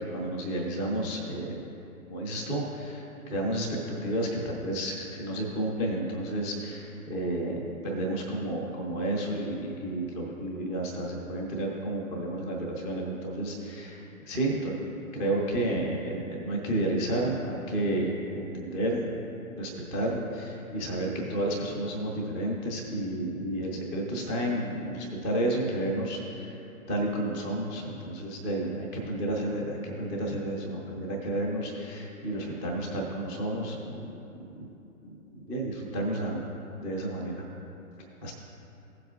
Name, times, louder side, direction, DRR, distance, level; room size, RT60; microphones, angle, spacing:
voice 1, 0.1-1.6 2.1-14.8 15.1-19.1 19.6-26.5 26.9-34.1 34.6-34.7 35.0-36.5 36.8-37.4 38.2-38.3, right 1 dB, 10° right, -1 dB, 0.4 m, -31 dB
15.5 x 7.8 x 2.4 m, 2.9 s
figure-of-eight pair, 120°, 44 cm